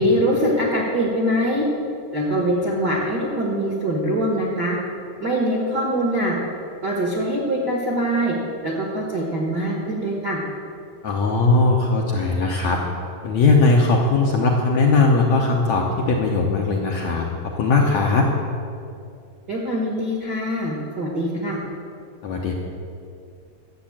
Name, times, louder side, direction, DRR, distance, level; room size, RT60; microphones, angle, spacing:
voice 1, 0.0-1.6 2.1-4.8 5.2-6.4 6.8-8.4 8.6-10.4 19.5-21.6, equal, 50° right, -3 dB, 1.3 m, -23 dB
voice 2, 11.0-12.8 13.2-18.3 22.2-22.5, left 3 dB, 70° left, -1 dB, 1.7 m, -19 dB
12.0 x 7.5 x 8.8 m, 2.5 s
omnidirectional pair, 4.3 m